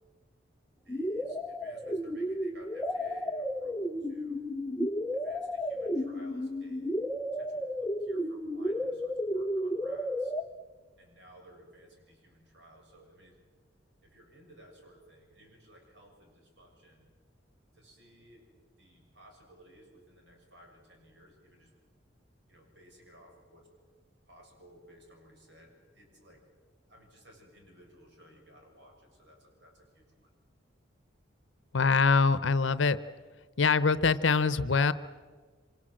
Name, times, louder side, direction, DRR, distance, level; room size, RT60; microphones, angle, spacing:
voice 1, 0.8-4.5 5.1-7.0 7.3-10.4 11.0-13.4 14.0-17.1 17.7-18.5 18.8-21.7 22.5-23.7 24.3-26.5 26.9-30.3, right 1 dB, 65° right, 2 dB, 7.0 m, -57 dB
sound 1, 0.9-10.4, equal, 10° left, 0.7 m, -33 dB
voice 2, 31.7-33.0 33.6-34.9, left 4 dB, 80° left, 14 dB, 0.8 m, -24 dB
26.5 x 26.0 x 7.8 m, 1.5 s
head